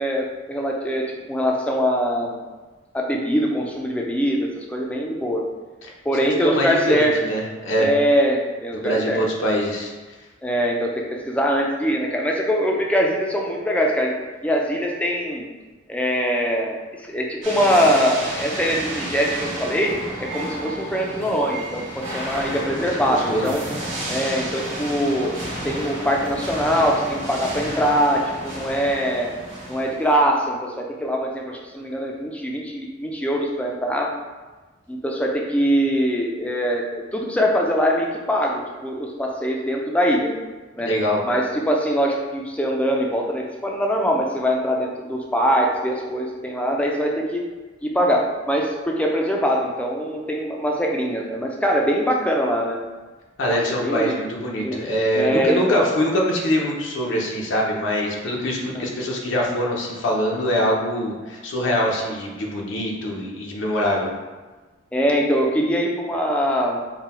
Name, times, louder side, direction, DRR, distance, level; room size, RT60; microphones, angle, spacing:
voice 1, 0.0-2.3 2.9-5.4 6.1-7.2 7.8-9.2 10.4-14.2 14.4-15.5 15.9-16.8 17.0-19.9 20.2-23.6 24.1-25.3 25.6-29.3 29.7-34.1 34.9-40.3 40.8-40.9 41.2-47.4 47.8-52.8 53.5-54.1 54.6-54.8 55.1-55.9 58.7-58.9 64.9-66.8, equal, 5° left, 0 dB, 0.4 m, -22 dB
voice 2, 6.2-7.9 8.7-9.9 23.3-23.5 40.8-41.2 53.4-64.1, equal, 75° left, -2 dB, 0.6 m, -23 dB
sound 1, 17.4-30.1, right 1 dB, 90° right, 1.3 m, -31 dB
3.7 x 2.2 x 4.2 m, 1.3 s
head